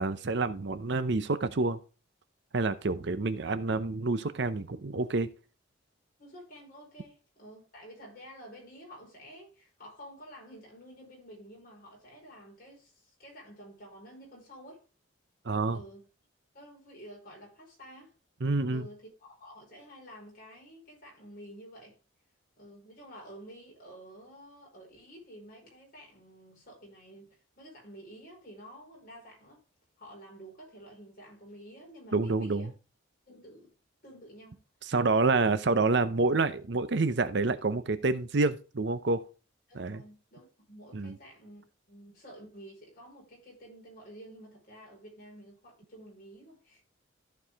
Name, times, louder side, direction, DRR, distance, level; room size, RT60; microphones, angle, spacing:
voice 1, 0.0-1.8 2.5-5.3 15.4-15.8 18.4-18.9 32.1-32.7 34.9-39.2 39.7-40.0 40.9-41.1, right 3 dB, 55° right, 0.7 m, -28 dB
voice 2, 6.2-14.9 15.7-16.0 16.5-18.1 18.7-22.0 22.6-29.6 30.0-32.7 33.3-33.7 34.0-34.6 39.7-46.8, equal, 45° left, 4.8 m, -50 dB
14.0 x 4.7 x 3.5 m
head